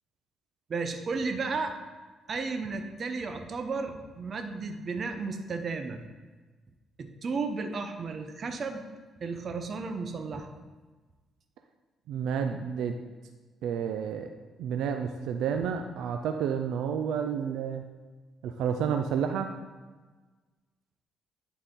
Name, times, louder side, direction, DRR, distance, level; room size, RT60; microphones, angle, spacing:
voice 1, 0.7-1.7 2.3-6.0 7.0-8.9 9.2-10.5, right 4 dB, 45° right, 6 dB, 0.8 m, -33 dB
voice 2, 12.1-13.0 13.6-14.3 14.6-17.8 18.4-19.5, right 7 dB, 85° right, 5 dB, 0.4 m, -30 dB
10.5 x 4.2 x 3.7 m, 1.3 s
cardioid pair, 90°, 0 cm